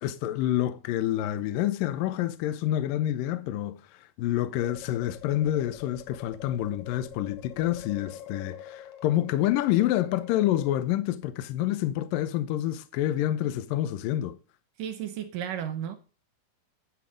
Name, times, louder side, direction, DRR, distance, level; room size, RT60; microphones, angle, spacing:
voice 1, 0.0-14.4, left 13 dB, 75° left, 2.3 m, -28 dB
sound 1, 4.6-10.7, left 9 dB, 60° left, 1.7 m, -45 dB
voice 2, 14.8-16.0, right 9 dB, 75° right, 2.2 m, -33 dB
10.5 x 9.8 x 5.1 m
omnidirectional pair, 4.4 m